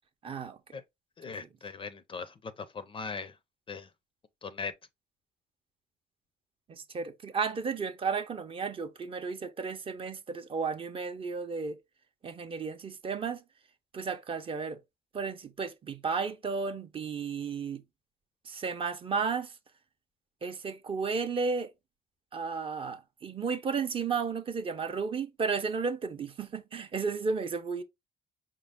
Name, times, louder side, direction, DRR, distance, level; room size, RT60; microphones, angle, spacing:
voice 1, 0.2-0.6 6.7-11.8 12.2-13.4 13.9-14.8 15.1-17.8 18.5-19.5 20.4-21.7 22.3-27.8, right 5 dB, 30° right, 0.6 m, -33 dB
voice 2, 1.2-3.3 3.7-3.9 4.4-4.7, left 5 dB, 30° left, 0.4 m, -39 dB
5.2 x 2.0 x 3.5 m
cardioid pair, 110°, 17 cm